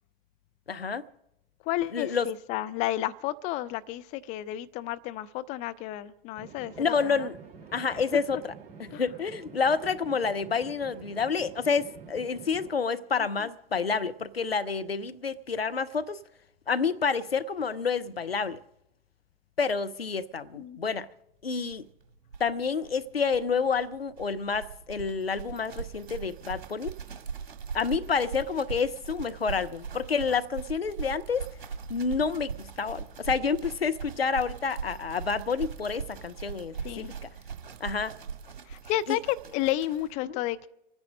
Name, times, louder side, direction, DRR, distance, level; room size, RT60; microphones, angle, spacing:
voice 1, 0.7-1.0 1.9-2.3 6.8-7.4 7.7-8.5 8.8-16.2 16.7-18.6 19.6-21.1 21.4-21.9 22.4-26.9 27.7-31.5 31.9-37.3 37.8-38.2 39.1-39.2 40.2-40.4, left 5 dB, 80° left, 0.7 m, -29 dB
voice 2, 1.7-7.3 8.9-9.0 13.2-13.5 20.6-20.8 36.8-37.1 38.7-40.7, left 14 dB, 25° left, 0.4 m, -32 dB
sound 1, 6.4-12.7, right 5 dB, 25° right, 5.5 m, -48 dB
sound 2, 21.7-21.8 22.0-22.1 22.3-40.1, right 6 dB, 60° right, 1.6 m, -40 dB
25.5 x 9.8 x 5.2 m
figure-of-eight pair, 95°, 29 cm